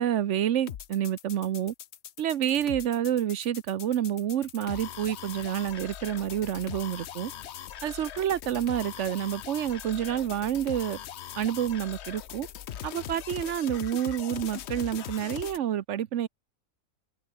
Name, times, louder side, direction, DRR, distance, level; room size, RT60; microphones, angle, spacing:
voice 1, 0.0-1.7 2.2-7.3 7.8-11.0 11.4-12.5 12.8-16.3, right 10 dB, 60° right, 1.0 m, -28 dB
sound 1, 0.7-15.6, left 10 dB, 55° left, 0.9 m, -41 dB
omnidirectional pair, 1.5 m